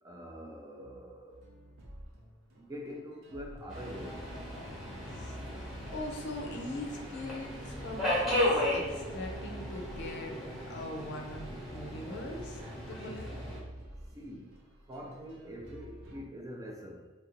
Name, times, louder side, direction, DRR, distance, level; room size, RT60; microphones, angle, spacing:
voice 1, 0.0-1.4 2.5-4.3 14.1-14.5 14.9-17.1, equal, 15° right, 1 dB, 0.4 m, -44 dB
sound 1, 1.3-16.2, equal, 80° right, 0.6 m, -49 dB
Subway metro underground, 3.7-13.6, left 1 dB, ahead, 0.8 m, -35 dB
voice 2, 5.0-5.4 5.9-10.4 10.7-13.4, left 1 dB, 60° left, 2 dB, 0.5 m, -41 dB
3.2 x 2.5 x 2.9 m, 1.2 s
head